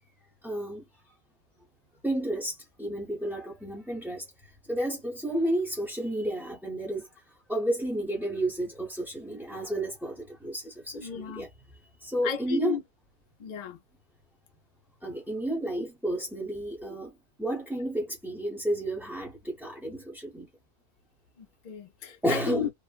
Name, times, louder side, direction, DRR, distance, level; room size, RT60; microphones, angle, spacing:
voice 1, 0.4-0.8 2.0-4.2 4.7-7.1 7.5-11.5 12.0-12.8 15.0-17.1 17.4-20.5 22.2-22.7, right 1 dB, ahead, 0.6 m, -31 dB
voice 2, 10.9-11.5 12.2-12.8 13.4-13.8 21.4-22.7, left 7 dB, 65° left, 0.4 m, -34 dB
3.1 x 2.0 x 2.3 m
omnidirectional pair, 1.3 m